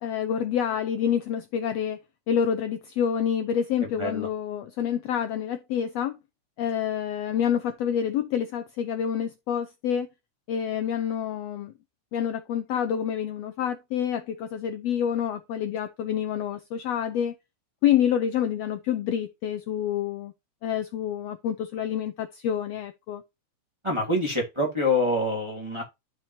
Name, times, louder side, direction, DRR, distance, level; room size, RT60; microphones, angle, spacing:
voice 1, 0.0-2.0 2.3-6.2 6.6-10.1 10.5-11.7 12.1-17.3 17.8-20.3 20.6-23.2, left 9 dB, 75° left, 1.6 m, -27 dB
voice 2, 4.0-4.3 23.8-25.8, left 1 dB, 10° right, 1.7 m, -26 dB
12.0 x 4.5 x 2.8 m
omnidirectional pair, 3.5 m